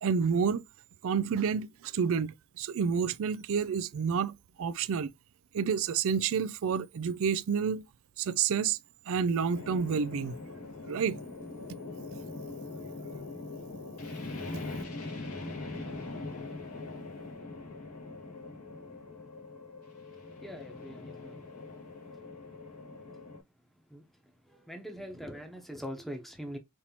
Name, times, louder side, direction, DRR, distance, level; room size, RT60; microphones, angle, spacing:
voice 1, 0.0-0.6 1.0-5.1 5.5-7.8 8.2-8.8 9.1-10.3 10.9-11.2, right 6 dB, 65° right, 0.4 m, -29 dB
sound 1, 9.5-23.4, left 3 dB, 85° left, 2.1 m, -42 dB
voice 2, 20.4-21.4 23.9-24.0 24.5-26.6, equal, ahead, 0.9 m, -42 dB
5.5 x 2.9 x 2.9 m
head